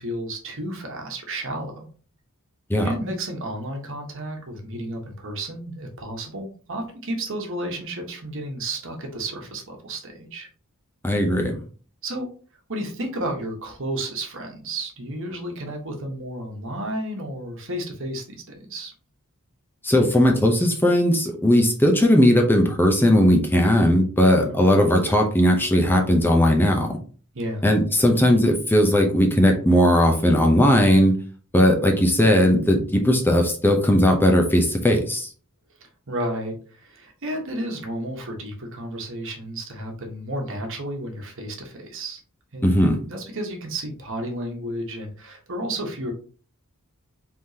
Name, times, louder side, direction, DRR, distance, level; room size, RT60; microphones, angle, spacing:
voice 1, 0.0-1.9 2.8-10.5 12.0-12.3 12.7-18.9 24.2-24.6 27.3-27.7 35.8-42.2 42.5-46.1, right 1 dB, 60° right, 3 dB, 1.2 m, -32 dB
voice 2, 11.0-11.6 19.8-26.9 27.6-31.1 31.5-35.3 42.6-43.0, equal, 10° left, 2 dB, 0.7 m, -18 dB
4.9 x 3.7 x 2.8 m, 0.40 s
head